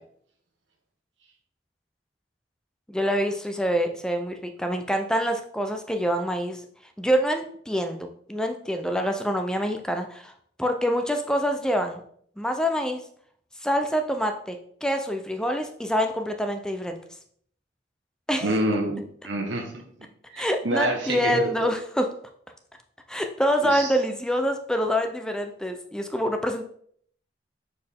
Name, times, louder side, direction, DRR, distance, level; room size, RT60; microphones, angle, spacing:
voice 1, 2.9-6.6 7.0-10.3 10.6-12.0 12.4-13.0 13.6-17.0 18.3-18.6 20.4-22.1 23.1-26.6, equal, 5° left, 5 dB, 0.5 m, -26 dB
voice 2, 18.4-19.8 20.3-21.7 23.6-23.9, right 1 dB, 80° right, 1 dB, 1.2 m, -27 dB
6.5 x 4.4 x 3.6 m, 0.62 s
head